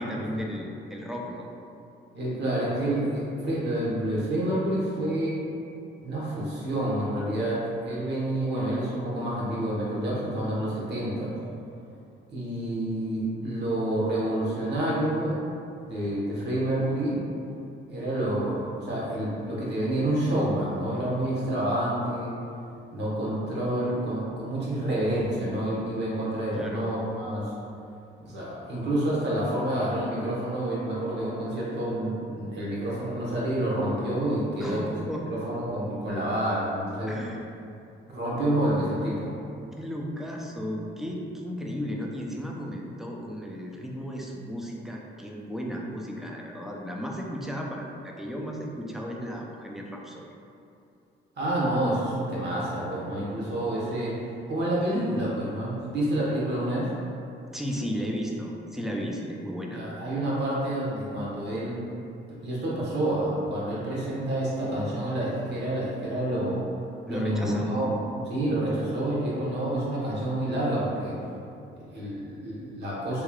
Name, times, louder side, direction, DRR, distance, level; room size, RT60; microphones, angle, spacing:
voice 1, 0.0-1.5 26.5-26.9 34.6-35.3 37.1-37.4 39.8-50.3 57.5-59.8 67.1-67.7, equal, ahead, -1 dB, 0.4 m, -34 dB
voice 2, 2.1-5.4 6.0-11.4 12.3-15.4 15.8-17.2 17.9-22.3 22.9-27.5 28.2-34.8 35.3-37.1 38.1-39.3 51.4-56.9 59.7-61.8 62.4-66.6 67.1-71.2 71.7-73.2, right 1 dB, 60° right, -6 dB, 1.1 m, -28 dB
3.6 x 3.1 x 2.3 m, 2.6 s
cardioid pair, 90°, 20 cm